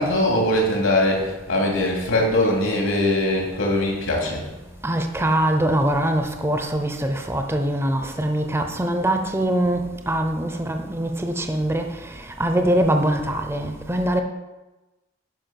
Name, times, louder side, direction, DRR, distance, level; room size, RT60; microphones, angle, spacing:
voice 1, 0.0-4.5, left 1 dB, 80° left, -1 dB, 2.7 m, -21 dB
voice 2, 4.8-14.2, right 1 dB, 15° right, 5 dB, 0.6 m, -23 dB
10.5 x 5.4 x 5.8 m, 1.1 s
head